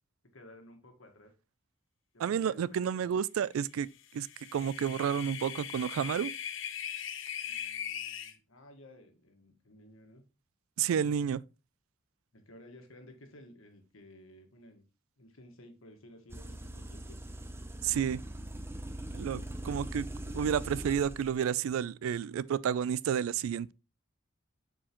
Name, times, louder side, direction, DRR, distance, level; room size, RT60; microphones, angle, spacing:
voice 1, 0.3-1.3 2.1-2.8 7.4-10.2 11.0-11.1 12.3-14.8 15.2-17.2, left 1 dB, 80° left, 1.5 m, -55 dB
voice 2, 2.2-3.9 4.1-4.3 4.5-6.3 10.8-11.4 17.8-18.2 19.1-20.1 20.3-23.7, right 8 dB, 85° right, 0.3 m, -30 dB
sound 1, 4.0-8.3, left 9 dB, 65° left, 0.7 m, -40 dB
sound 2, 16.3-21.3, right 1 dB, 10° right, 0.5 m, -41 dB
7.5 x 4.6 x 3.0 m
head